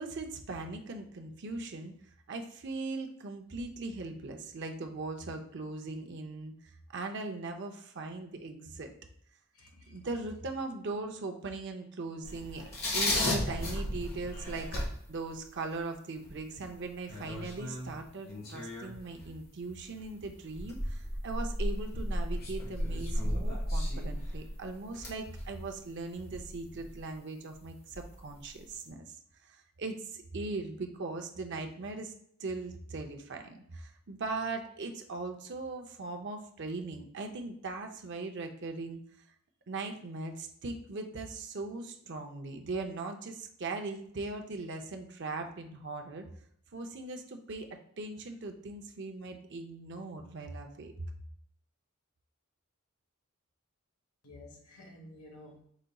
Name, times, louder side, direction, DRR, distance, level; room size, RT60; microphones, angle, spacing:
voice 1, 0.0-1.9 2.3-6.5 6.9-8.9 9.8-14.8 15.1-29.2 29.4-32.1 32.4-39.0 39.7-46.3 46.7-50.9, right 3 dB, 55° right, 4 dB, 0.6 m, -39 dB
voice 2, 9.5-10.1 12.3-12.4 12.6-12.7 54.2-55.6, left 1 dB, 80° left, 1 dB, 1.2 m, -52 dB
sound 1, 12.2-15.5 15.7-15.8 16.2-19.4 19.8-27.1 27.5-27.6 27.9-28.7, left 1 dB, 45° left, 1.4 m, -35 dB
5.0 x 3.9 x 2.3 m, 0.68 s
head